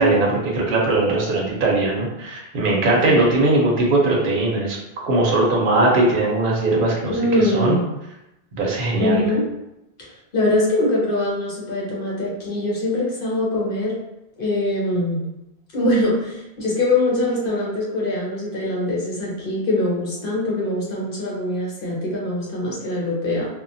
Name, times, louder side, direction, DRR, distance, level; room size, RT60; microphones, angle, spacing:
voice 1, 0.0-4.8 5.0-7.8 8.6-9.2, right 2 dB, 60° right, -3 dB, 0.8 m, -19 dB
voice 2, 7.1-7.9 8.9-9.5 10.0-10.1 10.3-13.9 14.4-15.2 15.7-23.5, left 1 dB, 60° left, -4 dB, 1.0 m, -22 dB
2.9 x 2.0 x 2.6 m, 0.90 s
omnidirectional pair, 1.1 m